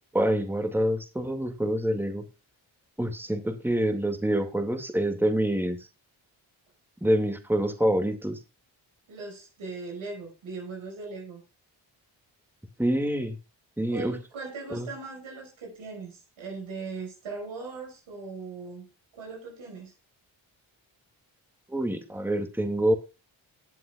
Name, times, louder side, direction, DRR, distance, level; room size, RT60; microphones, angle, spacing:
voice 1, 0.1-2.3 3.0-5.8 7.0-8.4 12.8-13.4 13.8-14.2 14.7-14.9 21.7-22.9, right 1 dB, 5° right, 7 dB, 2.2 m, -26 dB
voice 2, 9.1-11.4 13.9-18.9 19.1-19.9, right 4 dB, 85° right, 1 dB, 5.8 m, -39 dB
19.0 x 7.8 x 2.4 m, 0.30 s
cardioid pair, 60°, 46 cm